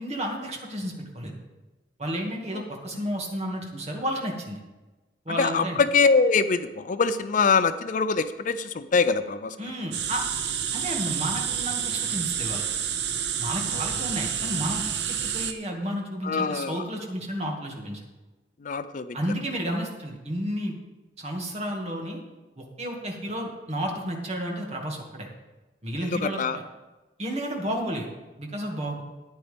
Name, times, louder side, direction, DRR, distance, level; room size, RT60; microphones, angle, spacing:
voice 1, 0.0-1.3 2.0-4.6 5.3-5.8 9.6-10.2 10.7-12.6 13.4-18.0 19.1-20.8 21.2-22.2 22.6-25.3 25.8-26.6 27.2-28.1 28.4-29.0, equal, 40° right, 0 dB, 2.0 m, -32 dB
voice 2, 5.4-9.6 16.2-16.8 18.6-19.2 26.0-26.6, left 4 dB, 50° left, 12 dB, 0.5 m, -24 dB
sound 1, 9.9-15.5, right 8 dB, 75° right, 0.8 m, -29 dB
13.5 x 9.9 x 3.5 m, 1.1 s
head